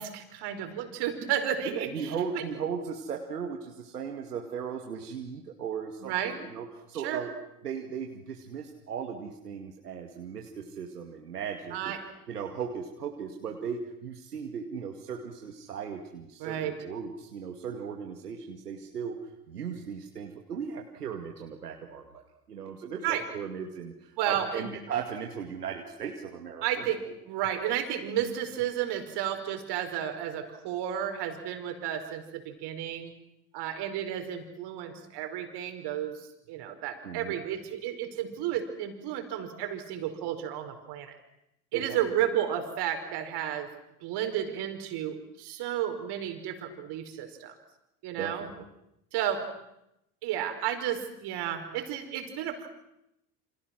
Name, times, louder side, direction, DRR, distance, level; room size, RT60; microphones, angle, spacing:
voice 1, 0.0-2.4 6.0-6.4 6.9-7.2 11.7-12.0 16.4-16.7 23.0-23.2 24.2-24.7 26.6-33.1 33.5-41.2 41.7-43.7 44.0-47.5 48.0-48.5 49.1-49.4 50.2-52.7, right 10 dB, 55° right, 6 dB, 5.3 m, -32 dB
voice 2, 1.6-7.3 7.6-12.0 12.3-19.2 19.5-22.2 22.5-26.8 37.0-37.4 41.7-42.0 48.2-48.5, right 7 dB, 85° right, 3 dB, 2.3 m, -37 dB
29.0 x 27.5 x 6.2 m, 0.83 s
hypercardioid pair, 65°, 46 cm